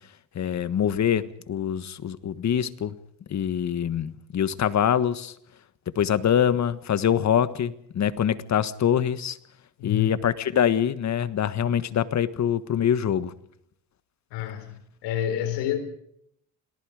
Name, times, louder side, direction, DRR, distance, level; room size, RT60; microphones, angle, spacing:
voice 1, 0.3-3.0 3.3-5.3 5.9-9.4 9.8-13.3, left 9 dB, 40° left, 1.5 m, -24 dB
voice 2, 9.8-10.2 14.3-14.8 15.0-15.8, left 11 dB, 85° left, 4.3 m, -28 dB
29.0 x 18.5 x 5.0 m
cardioid pair, 120°, 41 cm